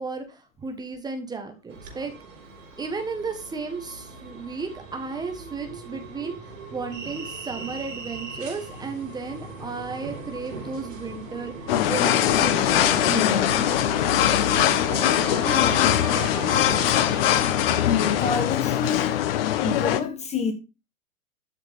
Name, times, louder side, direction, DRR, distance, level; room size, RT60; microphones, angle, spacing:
voice 1, 0.0-2.1 2.8-6.3 6.7-11.5 11.9-13.8, right 4 dB, 10° right, 1.3 m, -34 dB
sound 1, 1.7-18.2, right 4 dB, 65° right, 4.2 m, -37 dB
sound 2, 11.7-20.0, left 11 dB, 45° left, 1.0 m, -21 dB
voice 2, 15.4-16.0 18.2-19.2 19.6-20.5, left 5 dB, 15° left, 1.2 m, -28 dB
13.0 x 6.4 x 3.6 m
figure-of-eight pair, 115°, 42 cm